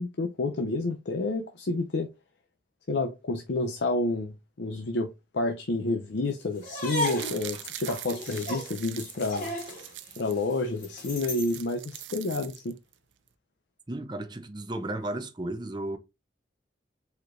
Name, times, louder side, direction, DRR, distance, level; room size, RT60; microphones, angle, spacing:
voice 1, 0.0-2.1 2.9-9.5 10.2-12.8, left 2 dB, 75° left, 0.6 m, -29 dB
sound 1, 6.6-11.6, equal, 45° left, 2.4 m, -35 dB
sound 2, 6.7-10.4 10.8-10.9 11.0-12.9 13.3-13.4, right 13 dB, 85° right, 0.6 m, -42 dB
voice 2, 13.9-16.0, right 1 dB, 25° right, 0.6 m, -34 dB
4.7 x 4.3 x 2.5 m
head